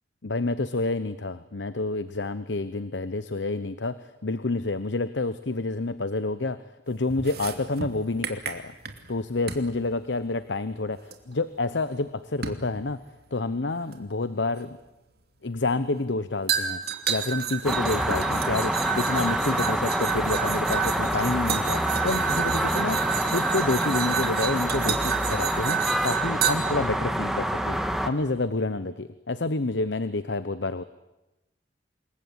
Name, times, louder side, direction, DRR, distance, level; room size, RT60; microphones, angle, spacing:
voice 1, 0.2-6.6 6.9-8.7 9.1-13.0 13.3-14.8 15.4-30.8, left 3 dB, 90° left, 13 dB, 1.0 m, -29 dB
sound 1, 7.1-9.1 9.5-9.7 11.1-11.2 12.4-12.7 13.9-14.0 16.5-26.5, right 8 dB, 60° right, 2.8 m, -30 dB
sound 2, 17.6-28.1, equal, ahead, 1.9 m, -27 dB
27.5 x 22.0 x 9.6 m, 0.98 s
head